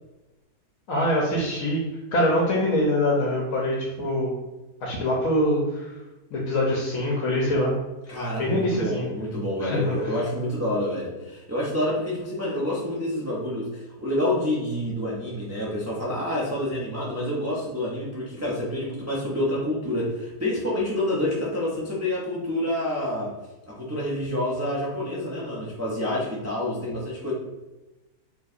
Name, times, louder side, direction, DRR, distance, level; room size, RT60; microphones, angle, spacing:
voice 1, 0.9-1.8 2.1-4.3 4.8-5.9 6.3-7.7 8.1-9.1 9.6-10.1, left 1 dB, 65° left, -3 dB, 1.1 m, -24 dB
voice 2, 8.1-23.3 23.7-27.3, left 1 dB, 20° right, -6 dB, 0.4 m, -28 dB
4.5 x 3.1 x 2.5 m, 1.1 s
omnidirectional pair, 1.6 m